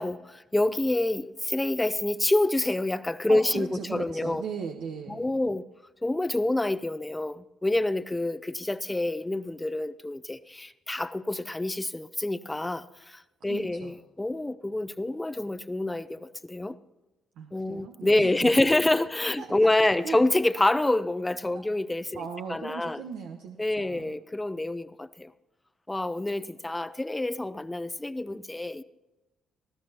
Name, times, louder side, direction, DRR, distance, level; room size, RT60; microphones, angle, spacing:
voice 1, 0.0-4.4 5.1-5.6 6.0-16.8 17.5-22.2 22.5-23.0 23.6-25.3 25.9-28.8, left 2 dB, 15° left, 0.5 m, -27 dB
voice 2, 3.3-5.3 13.4-13.9 17.4-18.5 19.4-20.2 22.1-24.2, right 6 dB, 90° right, 1.0 m, -38 dB
21.5 x 14.0 x 2.9 m
cardioid pair, 90°, 0 cm